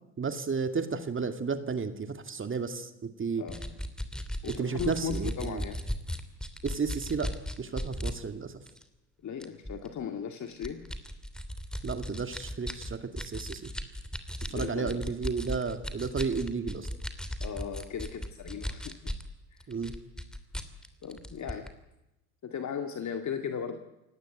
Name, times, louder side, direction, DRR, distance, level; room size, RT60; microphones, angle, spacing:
voice 1, 0.2-2.9 3.2-3.4 4.5-5.6 6.6-7.3 7.6-8.5 11.8-13.7 14.5-16.9 19.7-19.9, right 5 dB, 25° right, 8 dB, 2.3 m, -32 dB
voice 2, 3.4-3.8 4.4-5.8 9.2-10.9 14.5-15.1 17.4-19.2 19.5-19.7 21.0-21.7 22.4-23.8, left 7 dB, 40° left, 6 dB, 2.1 m, -37 dB
sound 1, 3.5-8.1 8.7-8.8 9.4-9.9 10.5-19.3 19.6-21.7, equal, ahead, 3.1 m, -36 dB
29.0 x 17.0 x 9.3 m, 0.98 s
hypercardioid pair, 70°, 45 cm